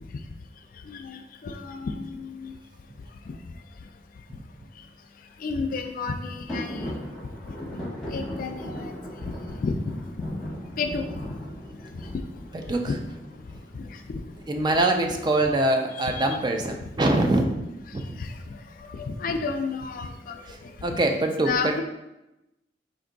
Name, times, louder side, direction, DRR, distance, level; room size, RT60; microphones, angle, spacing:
voice 1, 0.9-2.5 3.3-3.4 5.4-7.0 8.1-8.9 9.6-9.8 10.8-11.0 12.8-13.0 13.7-14.2 16.1-16.3 18.2-21.8, left 4 dB, 50° left, 7 dB, 0.4 m, -32 dB
sound 1, 6.5-15.1, equal, ahead, 1.1 m, -38 dB
voice 2, 12.5-12.9 14.5-17.6 17.9-18.2 20.5-21.8, right 2 dB, 25° right, 4 dB, 0.4 m, -24 dB
4.6 x 2.6 x 3.8 m, 0.92 s
head